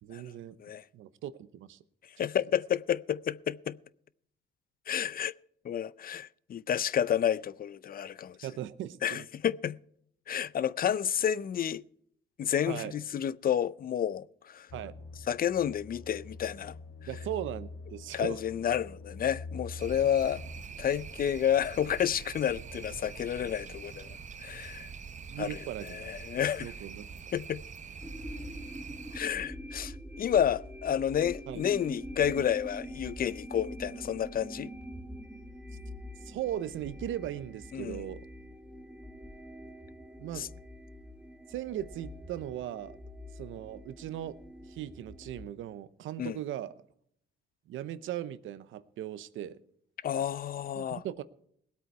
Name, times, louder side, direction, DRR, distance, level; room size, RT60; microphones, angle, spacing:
voice 1, 0.0-0.6 0.9-1.8 2.2-2.3 8.4-9.2 12.7-12.9 14.7-14.9 17.1-18.4 25.3-26.1 26.6-27.1 31.5-31.6 36.2-38.2 40.2-40.5 41.5-43.0 43.4-44.4 44.7-46.7 47.7-49.6 50.7-51.2, right 12 dB, 80° right, 0.8 m, -38 dB
voice 2, 2.2-3.8 4.9-5.3 5.6-8.4 9.0-9.8 10.3-11.8 12.4-14.7 15.3-16.8 18.1-20.4 20.8-24.9 25.4-26.7 27.3-27.6 29.1-34.7 37.7-38.1 40.4-40.5 46.2-46.4 50.0-51.0, left 9 dB, 50° left, 0.5 m, -30 dB
sound 1, 14.7-20.6, left 3 dB, 75° left, 1.8 m, -45 dB
sound 2, 19.8-29.2, right 6 dB, 35° right, 0.9 m, -45 dB
sound 3, 28.0-45.5, equal, 5° right, 1.1 m, -44 dB
19.0 x 8.5 x 4.6 m
cardioid pair, 90°, 20 cm